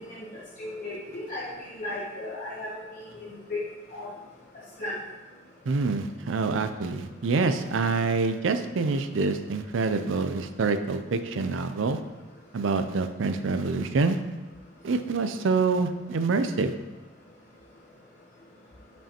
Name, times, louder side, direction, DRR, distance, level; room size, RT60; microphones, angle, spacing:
voice 1, 0.6-1.5 1.8-2.7 3.1-3.2 3.5-3.6 3.9-4.1 4.8-5.0, left 2 dB, 45° left, -7 dB, 1.0 m, -34 dB
voice 2, 5.7-12.0 12.5-14.2 14.8-16.7, right 4 dB, 80° right, 9 dB, 0.4 m, -26 dB
7.4 x 5.4 x 2.9 m, 1.1 s
head